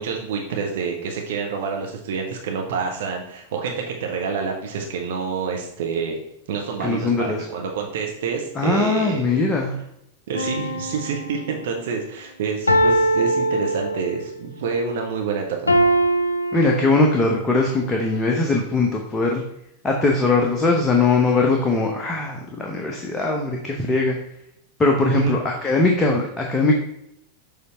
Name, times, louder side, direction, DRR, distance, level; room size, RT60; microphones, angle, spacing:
voice 1, 0.0-6.2 6.5-9.3 10.3-15.7 25.0-25.4, right 5 dB, 55° right, 2 dB, 0.8 m, -27 dB
voice 2, 6.8-7.4 8.6-9.8 16.5-19.4 19.8-24.2 24.8-26.8, left 3 dB, 15° left, 0 dB, 0.8 m, -20 dB
sound 1, 10.3-11.7 12.7-14.3 15.7-17.4 18.0-18.2, right 1 dB, 80° left, 0.5 m, -22 dB
6.8 x 3.3 x 4.4 m, 0.79 s
figure-of-eight pair, 90°, 0 cm